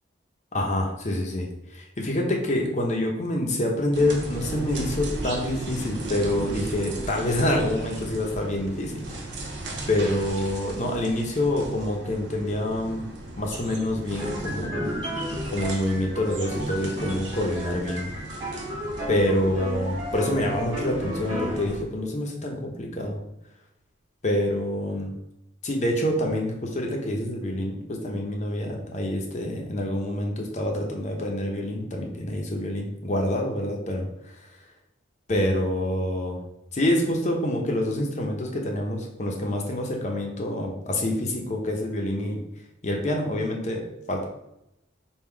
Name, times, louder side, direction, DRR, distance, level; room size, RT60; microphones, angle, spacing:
voice 1, 0.5-9.3 9.9-13.1 13.4-14.9 15.5-18.1 19.1-23.2 24.2-25.2 25.6-34.1 35.3-36.4 36.7-42.4 42.8-43.8 44.1-44.2, left 1 dB, 40° left, 1 dB, 0.7 m, -27 dB
sound 1, 3.9-21.8, right 2 dB, 70° right, 0.7 m, -36 dB
sound 2, 14.2-21.7, equal, 25° right, 1.2 m, -33 dB
3.7 x 2.3 x 4.5 m, 0.84 s
head